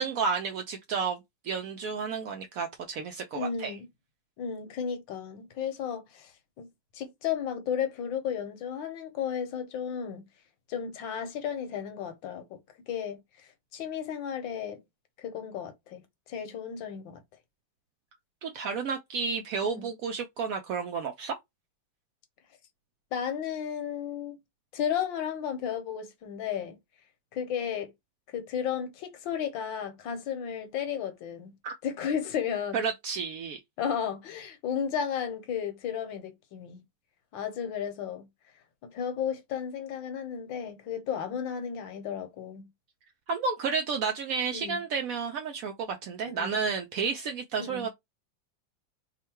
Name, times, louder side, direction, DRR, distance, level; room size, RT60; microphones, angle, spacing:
voice 1, 0.0-3.8 18.4-21.3 31.6-31.8 32.7-33.6 43.3-47.9, right 5 dB, 80° right, 0.7 m, -31 dB
voice 2, 3.3-3.9 4.4-6.3 6.6-6.7 6.9-10.2 10.7-12.6 12.9-14.8 15.2-16.0 16.3-17.2 19.6-19.9 23.1-24.4 24.7-26.8 27.3-27.9 28.3-31.5 31.8-32.8 33.8-36.8 37.3-38.3 38.8-42.7 44.5-44.8 46.3-46.5 47.6-47.9, left 8 dB, 75° left, 1.6 m, -33 dB
3.6 x 2.2 x 4.4 m
omnidirectional pair, 2.1 m